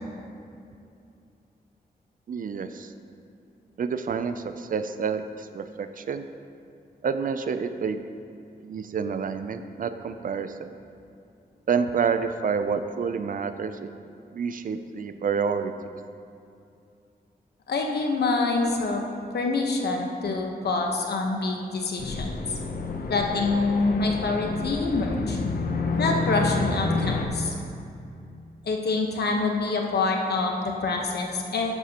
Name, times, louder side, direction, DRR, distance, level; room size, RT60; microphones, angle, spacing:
voice 1, 2.3-2.9 3.8-6.2 7.0-8.0 8.6-10.7 11.7-13.9 14.3-15.7, right 6 dB, 55° right, 9 dB, 0.4 m, -28 dB
voice 2, 17.7-19.0 19.3-22.3 23.1-25.4 26.0-27.5 28.6-31.7, left 3 dB, 80° left, 1 dB, 1.1 m, -26 dB
sound 1, 22.0-27.3, left 3 dB, 60° left, 0.7 m, -29 dB
11.5 x 8.1 x 2.9 m, 2.6 s
wide cardioid pair, 170°, 17 cm